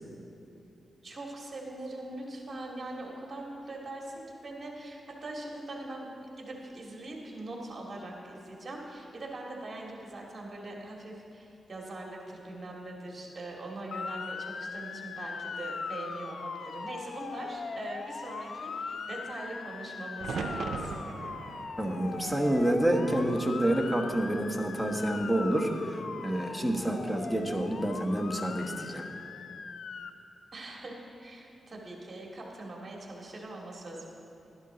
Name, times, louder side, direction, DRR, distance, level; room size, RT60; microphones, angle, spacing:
voice 1, 1.0-6.1 6.4-21.0 30.5-34.1, right 2 dB, 40° right, -2 dB, 2.3 m, -42 dB
Motor vehicle (road) / Siren, 13.9-30.1, left 5 dB, 70° left, 0.4 m, -40 dB
sound 1, 20.2-24.2 24.6-25.4 27.2-27.7, right 5 dB, 80° right, 0.5 m, -41 dB
voice 2, 21.8-29.0, right 1 dB, 5° left, 2 dB, 1.2 m, -28 dB
12.0 x 11.0 x 3.9 m, 2.8 s
cardioid pair, 80°, 0 cm